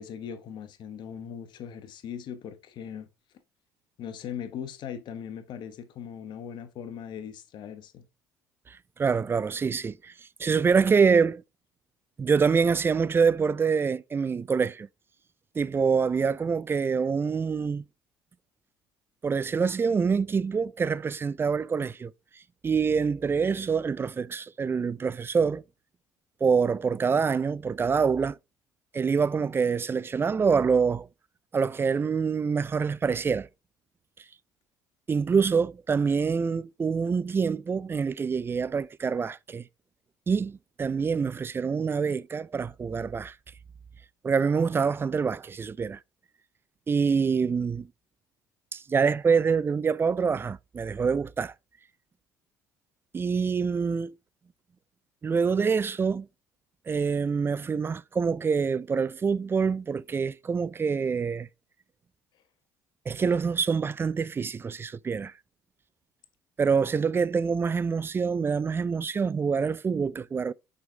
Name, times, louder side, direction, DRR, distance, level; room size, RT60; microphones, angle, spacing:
voice 1, 0.0-3.1 4.0-8.0, left 8 dB, 60° left, 1.3 m, -39 dB
voice 2, 8.7-10.1 10.4-11.4 12.2-14.9 15.6-17.8 19.2-22.1 22.6-25.6 26.4-28.4 28.9-31.1 31.5-33.5 35.1-39.6 40.3-43.3 44.2-46.0 46.9-47.9 48.7-51.5 53.1-54.1 55.2-56.3 56.9-61.5 63.1-65.3 66.6-70.5, right 5 dB, 25° right, 0.4 m, -26 dB
6.2 x 5.3 x 3.4 m
hypercardioid pair, 65°, 9 cm